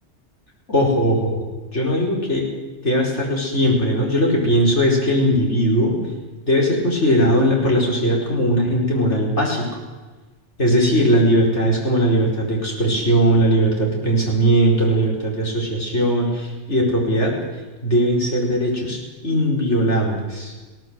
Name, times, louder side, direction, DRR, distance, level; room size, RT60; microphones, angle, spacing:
voice 1, 0.7-1.4 1.7-2.5 2.8-6.0 6.5-9.8 10.6-17.4 17.8-20.5, equal, 75° left, -1 dB, 5.2 m, -19 dB
20.0 x 17.5 x 8.1 m, 1.3 s
omnidirectional pair, 1.2 m